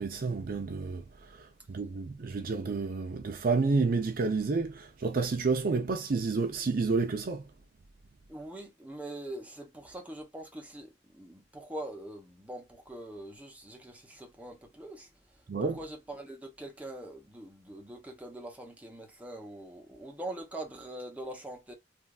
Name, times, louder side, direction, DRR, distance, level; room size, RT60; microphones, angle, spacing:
voice 1, 0.0-7.5 15.5-15.8, right 4 dB, 50° right, 0.5 m, -30 dB
voice 2, 8.3-15.1 15.6-21.7, right 1 dB, 10° right, 0.8 m, -43 dB
3.2 x 2.6 x 2.3 m
head